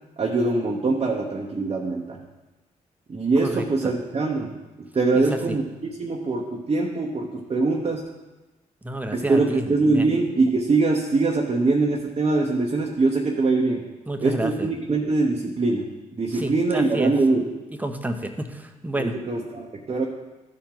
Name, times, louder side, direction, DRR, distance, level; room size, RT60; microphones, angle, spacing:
voice 1, 0.2-2.2 3.1-5.6 6.0-8.0 9.1-13.8 14.2-15.8 16.1-17.4 19.0-20.1, right 3 dB, 35° right, -1 dB, 1.0 m, -23 dB
voice 2, 3.4-3.9 5.1-5.6 8.8-10.1 14.1-14.7 16.3-17.1 17.7-19.2, right 1 dB, 10° right, 6 dB, 1.0 m, -30 dB
12.5 x 4.4 x 3.9 m, 1.1 s
supercardioid pair, 50°, 17 cm